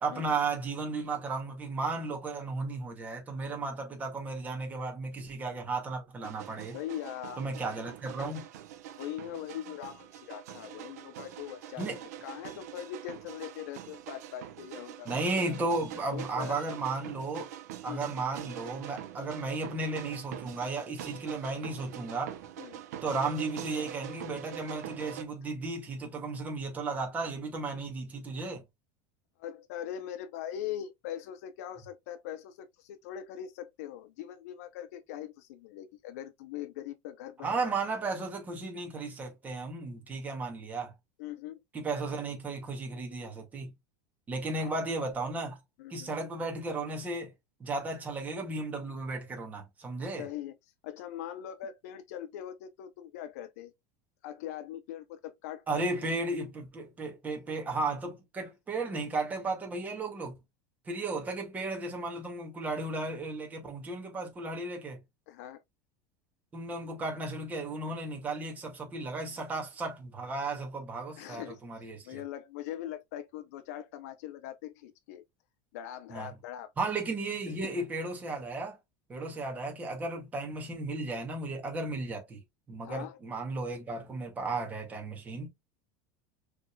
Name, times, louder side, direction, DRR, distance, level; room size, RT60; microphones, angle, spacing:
voice 1, 0.0-6.8 7.4-8.5 11.8-12.0 15.1-17.5 17.8-22.3 23.0-28.6 37.4-40.9 41.7-43.7 44.3-45.6 45.9-47.3 47.6-50.3 55.7-60.3 60.9-65.0 66.5-72.2 76.1-76.3 76.8-78.8 79.1-82.4 82.7-85.5, right 3 dB, 20° right, 2.0 m, -34 dB
sound 1, 6.2-25.2, right 11 dB, 85° right, 0.9 m, -44 dB
voice 2, 6.7-7.4 8.9-15.4 16.1-16.8 17.9-18.1 19.2-19.3 22.6-22.8 29.4-37.7 41.2-41.6 44.6-44.7 45.8-46.1 50.2-50.6 50.8-53.7 54.2-56.1 65.3-65.6 71.2-75.2 75.7-76.7 77.5-77.9 82.8-83.2, left 11 dB, 75° left, 0.6 m, -41 dB
6.0 x 3.6 x 2.3 m
supercardioid pair, 145°, 8 cm